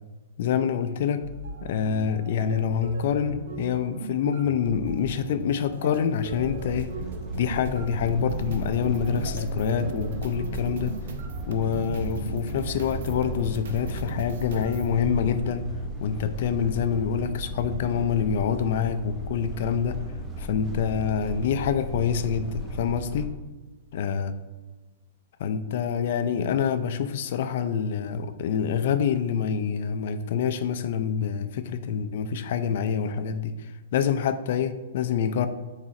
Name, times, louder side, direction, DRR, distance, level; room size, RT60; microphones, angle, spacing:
voice 1, 0.4-1.2 1.6-6.9 7.3-10.9 11.5-15.6 16.0-20.0 20.4-23.3 23.9-24.4 25.4-35.5, left 7 dB, 50° left, 10 dB, 0.4 m, -26 dB
sound 1, 1.2-14.9, right 3 dB, 65° right, 0.7 m, -37 dB
sound 2, 6.3-23.3, right 1 dB, 15° right, 0.7 m, -36 dB
6.2 x 4.1 x 4.2 m, 1.2 s
hypercardioid pair, 165°, 0 cm